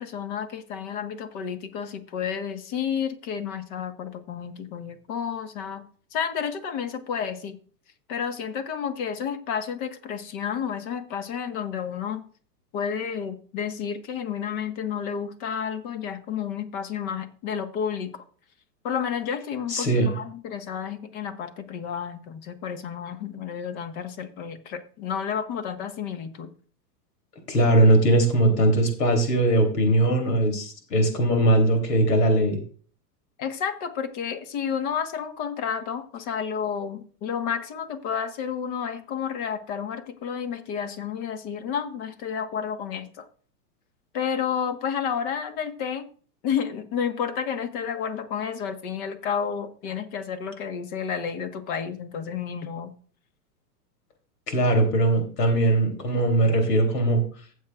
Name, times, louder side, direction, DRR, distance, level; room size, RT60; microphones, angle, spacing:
voice 1, 0.0-5.8 6.1-7.6 8.1-12.2 12.7-18.2 18.8-26.5 33.4-43.3 44.1-46.1 46.4-52.9, left 7 dB, 45° left, 1.5 m, -31 dB
voice 2, 19.7-20.1 27.5-32.6 54.5-57.2, right 1 dB, 85° left, 3.4 m, -20 dB
15.5 x 7.6 x 2.5 m
hypercardioid pair, 130°, 47 cm